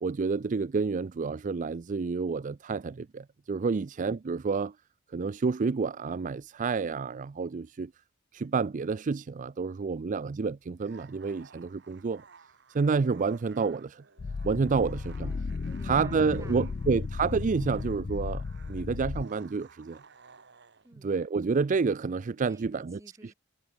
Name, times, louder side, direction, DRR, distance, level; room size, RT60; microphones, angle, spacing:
voice 1, 0.0-4.7 5.1-7.9 8.3-12.2 12.7-14.0 14.4-15.3 15.8-20.0 21.0-23.0, right 4 dB, 35° right, 0.4 m, -29 dB
voice 2, 9.6-10.0 14.7-17.0 20.8-21.1 22.4-23.3, right 1 dB, 15° right, 2.2 m, -55 dB
sound 1, 10.7-20.9, right 5 dB, 55° right, 2.3 m, -56 dB
sound 2, 14.2-19.2, left 4 dB, 40° left, 0.4 m, -35 dB
head